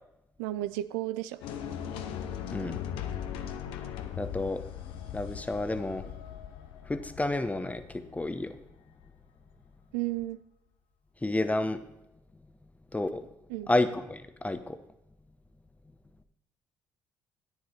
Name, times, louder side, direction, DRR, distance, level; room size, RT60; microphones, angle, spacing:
voice 1, 0.4-1.4 9.9-10.4 13.5-13.7, right 15 dB, 80° right, 13 dB, 0.4 m, -33 dB
sound 1, 1.4-9.5, left 9 dB, 70° left, 0.8 m, -39 dB
voice 2, 4.2-4.6 5.1-6.1 6.9-8.6 11.2-11.8 12.9-13.3 13.7-14.8, left 2 dB, 15° left, 10 dB, 1.0 m, -30 dB
10.5 x 9.4 x 4.2 m, 0.89 s
hypercardioid pair, 50°, 9 cm